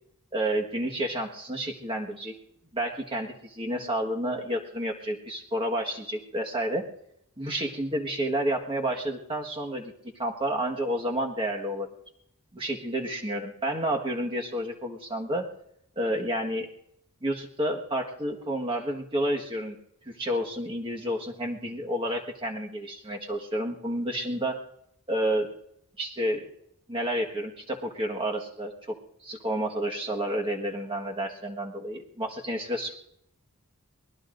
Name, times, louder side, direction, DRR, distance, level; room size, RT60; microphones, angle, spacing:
voice 1, 0.3-2.3 2.7-6.9 7.4-9.9 10.2-11.9 12.5-15.5 16.0-16.7 17.2-19.7 20.0-24.6 25.1-25.5 26.0-26.4 26.9-29.0 29.2-33.0, right 1 dB, 25° right, 1 dB, 1.5 m, -30 dB
23.5 x 20.0 x 2.6 m, 0.73 s
head